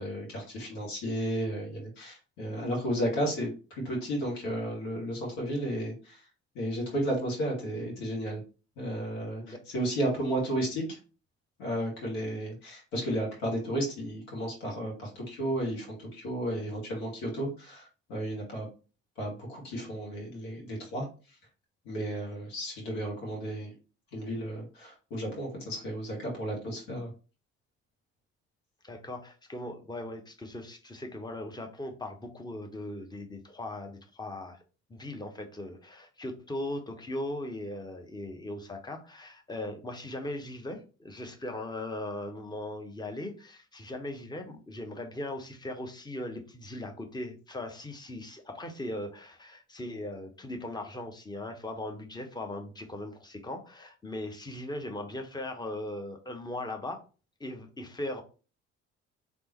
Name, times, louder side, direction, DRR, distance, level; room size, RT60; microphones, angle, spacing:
voice 1, 0.0-6.2 6.5-8.4 8.8-11.0 11.6-18.7 19.2-21.1 21.8-23.7 24.1-27.1, right 1 dB, 70° left, -1 dB, 1.7 m, -33 dB
voice 2, 28.8-34.6 34.9-57.0 57.4-58.2, left 1 dB, 10° left, 4 dB, 1.0 m, -39 dB
3.6 x 3.0 x 3.0 m, 0.34 s
hypercardioid pair, 50°, 35 cm